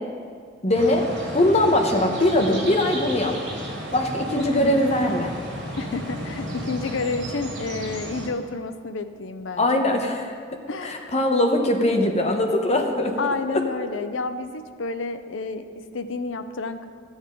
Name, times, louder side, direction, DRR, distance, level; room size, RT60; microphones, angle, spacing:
voice 1, 0.6-1.1 1.3-3.3 3.9-5.3 9.6-10.3 10.8-13.2 13.5-13.6, left 1 dB, 35° left, 3 dB, 1.0 m, -21 dB
sound 1, 0.7-8.3, right 1 dB, 70° right, 2.3 m, -33 dB
voice 2, 5.8-9.9 10.7-11.1 13.2-16.9, left 3 dB, 90° left, 10 dB, 0.6 m, -30 dB
13.5 x 7.9 x 3.8 m, 2.2 s
head